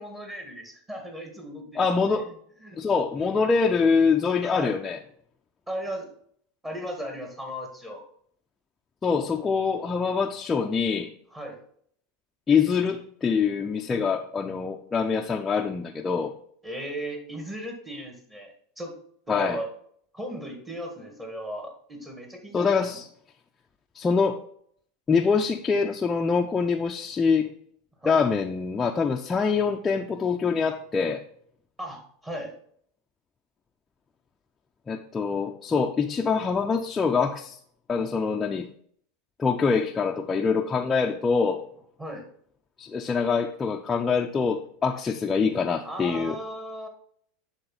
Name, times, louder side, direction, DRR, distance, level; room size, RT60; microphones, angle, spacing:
voice 1, 0.0-2.3 2.6-2.8 3.2-3.3 4.3-4.7 5.7-6.1 6.6-8.0 11.3-11.6 16.6-19.0 19.3-19.7 20.1-22.8 28.0-28.3 31.8-32.5 42.0-42.3 45.8-46.9, equal, 15° right, 2 dB, 1.9 m, -36 dB
voice 2, 1.8-2.3 2.8-5.0 9.0-11.1 12.5-16.3 19.3-19.6 22.5-23.1 24.0-24.4 25.1-27.5 28.0-31.2 34.9-37.6 37.9-38.7 39.4-41.6 42.8-46.4, left 5 dB, 20° left, 2 dB, 0.5 m, -24 dB
10.5 x 3.6 x 4.1 m, 0.63 s
hypercardioid pair, 110°, 0 cm